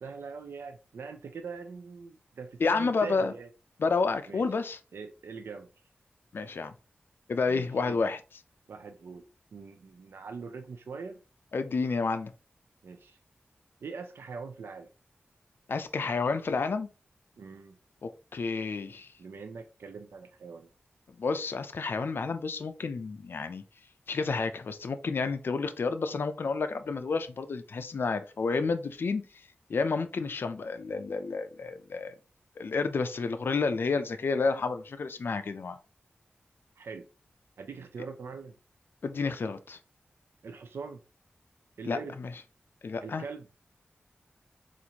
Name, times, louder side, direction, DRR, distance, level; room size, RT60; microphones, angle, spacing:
voice 1, 0.0-3.5 4.3-4.5 4.9-5.7 7.4-8.0 8.7-9.2 9.5-11.2 12.8-13.2 13.8-14.9 17.4-17.8 19.2-20.7 36.8-37.1 37.6-38.6 40.4-41.0 41.8-42.2 43.0-43.5, right 5 dB, 85° right, 6 dB, 0.4 m, -42 dB
voice 2, 2.6-3.3 3.8-4.8 6.3-6.7 7.3-8.2 11.5-12.3 15.7-16.9 18.0-19.1 21.2-23.6 24.1-29.2 29.7-32.1 32.6-35.8 39.0-39.8 41.8-42.3 42.8-43.2, left 4 dB, 65° left, 9 dB, 0.4 m, -30 dB
4.2 x 2.5 x 2.8 m, 0.33 s
wide cardioid pair, 80°, 4 cm